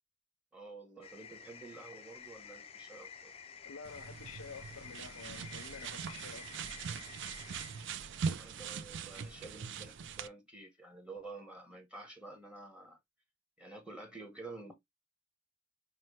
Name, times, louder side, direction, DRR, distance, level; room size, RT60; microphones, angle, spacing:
voice 1, 0.5-3.3 8.3-13.0 13.6-14.7, right 3 dB, 5° right, 0.9 m, -50 dB
sound 1, 1.0-9.8, left 7 dB, 30° left, 0.4 m, -52 dB
voice 2, 3.6-6.5, left 5 dB, 85° left, 0.6 m, -50 dB
sound 2, 3.9-10.3, right 6 dB, 60° right, 0.4 m, -41 dB
5.7 x 2.2 x 3.1 m
head